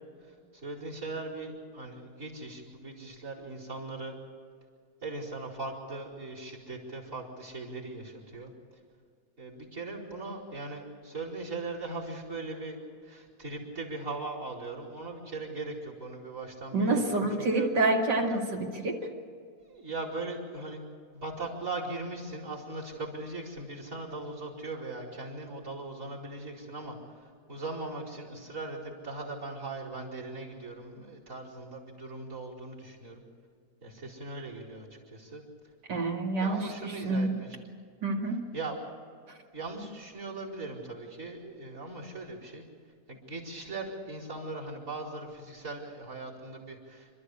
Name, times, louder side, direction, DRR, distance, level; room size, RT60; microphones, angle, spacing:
voice 1, 0.2-4.1 5.0-8.5 9.4-12.8 13.0-17.7 19.6-20.8 21.1-33.2 33.8-35.4 36.3-37.6 38.5-38.8 39.5-42.6 43.1-47.1, right 3 dB, 45° right, 1 dB, 5.0 m, -39 dB
voice 2, 16.7-19.0 35.9-37.4 38.0-38.4, right 2 dB, 75° right, 1 dB, 2.9 m, -28 dB
28.0 x 13.5 x 8.4 m, 2.1 s
omnidirectional pair, 1.9 m